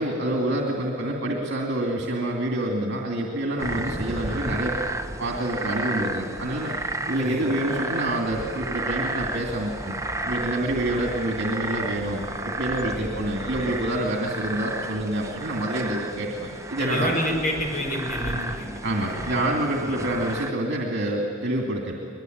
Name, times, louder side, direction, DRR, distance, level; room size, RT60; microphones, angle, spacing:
voice 1, 0.0-4.8 5.2-6.7 7.1-10.0 10.2-17.1 18.8-21.9, right 1 dB, 60° right, 0 dB, 2.6 m, -27 dB
sound 1, 3.6-20.5, right 2 dB, 15° right, 1.0 m, -32 dB
voice 2, 16.8-18.7 19.0-19.4 19.8-19.9, equal, 45° left, 2 dB, 5.3 m, -29 dB
23.0 x 22.5 x 9.4 m, 2.5 s
head